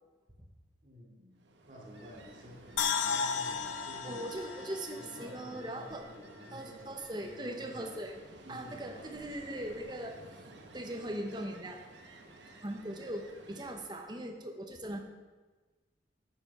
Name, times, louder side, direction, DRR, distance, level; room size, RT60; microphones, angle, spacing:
voice 1, 0.8-4.3 5.0-7.9 8.4-9.1, equal, 40° right, -4 dB, 2.7 m, -51 dB
Ocean, 1.4-14.1, right 2 dB, 70° right, 1.1 m, -54 dB
sound 1, 2.8-6.0 6.3-6.4, left 6 dB, 80° left, 0.8 m, -35 dB
voice 2, 4.0-6.0 6.5-8.2 8.5-10.2 10.7-11.8 12.6-15.0, right 1 dB, 20° right, 3 dB, 1.0 m, -40 dB
9.9 x 7.0 x 5.6 m, 1.3 s
head